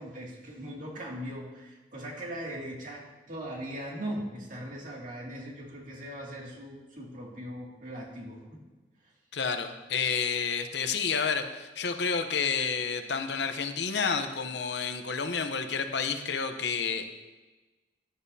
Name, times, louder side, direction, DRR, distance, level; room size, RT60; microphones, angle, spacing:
voice 1, 0.0-8.6, equal, 50° right, -2 dB, 2.4 m, -39 dB
voice 2, 9.3-17.1, left 5 dB, 70° left, 8 dB, 0.8 m, -30 dB
14.5 x 10.0 x 2.8 m, 1.2 s
head